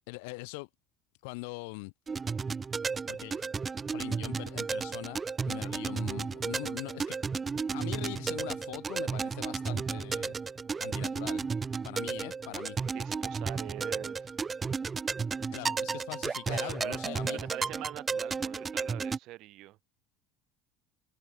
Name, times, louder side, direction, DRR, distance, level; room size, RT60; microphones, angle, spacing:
voice 1, 0.1-0.7 1.2-1.9 3.1-3.5 3.9-7.2 7.7-10.3 10.8-11.5 11.8-12.8 15.5-17.5, left 30 dB, 85° left, 2.0 m, -42 dB
sound 1, 2.1-19.2, right 5 dB, 25° right, 0.7 m, -33 dB
voice 2, 12.9-14.3 16.5-17.0 17.3-19.8, right 17 dB, 65° right, 7.7 m, -43 dB
supercardioid pair, 110°, 0 cm